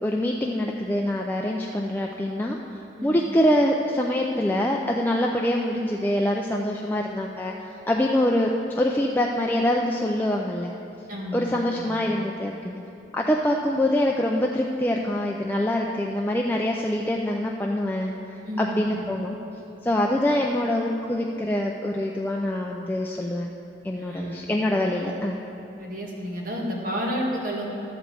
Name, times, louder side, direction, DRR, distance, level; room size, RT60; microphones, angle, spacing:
voice 1, 0.0-10.8 11.3-12.8 13.1-19.4 19.8-23.5 23.8-25.4, left 1 dB, 10° left, -1 dB, 0.4 m, -25 dB
voice 2, 11.1-11.8 18.4-19.0 24.0-24.5 25.8-27.7, equal, 45° right, -3 dB, 1.7 m, -31 dB
12.0 x 5.2 x 7.5 m, 2.8 s
head